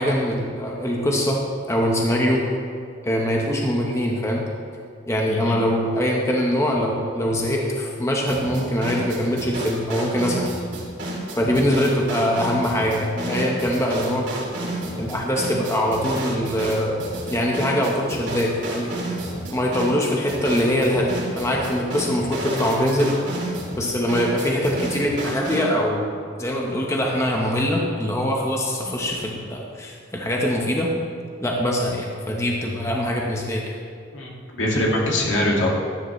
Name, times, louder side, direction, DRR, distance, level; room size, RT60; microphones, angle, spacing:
voice 1, 0.0-2.4 3.0-4.4 5.1-10.5 11.4-14.3 15.0-18.9 19.5-23.2 23.8-26.1 26.4-30.9 31.4-33.7, equal, 15° left, -1 dB, 1.0 m, -23 dB
voice 2, 5.3-5.6 14.8-15.0 34.1-35.7, left 1 dB, 80° left, -3 dB, 2.2 m, -23 dB
sound 1, 8.3-25.7, right 1 dB, 60° right, 2.9 m, -31 dB
13.5 x 9.6 x 3.2 m, 2.4 s
head